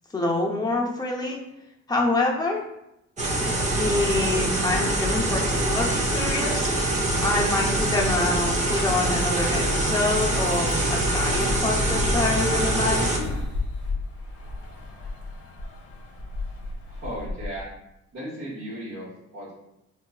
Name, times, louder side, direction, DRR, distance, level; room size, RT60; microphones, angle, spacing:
voice 1, 0.1-1.4 1.9-2.6 3.8-6.7 7.2-13.1, left 2 dB, 15° left, -2 dB, 0.7 m, -26 dB
sound 1, 3.2-13.2, right 1 dB, 25° right, 0.6 m, -24 dB
sound 2, 10.4-17.6, left 3 dB, 50° left, 0.7 m, -34 dB
voice 2, 16.9-17.7 18.1-19.6, equal, 45° right, -9 dB, 1.1 m, -36 dB
4.0 x 2.3 x 2.3 m, 0.84 s
cardioid pair, 90°, 30 cm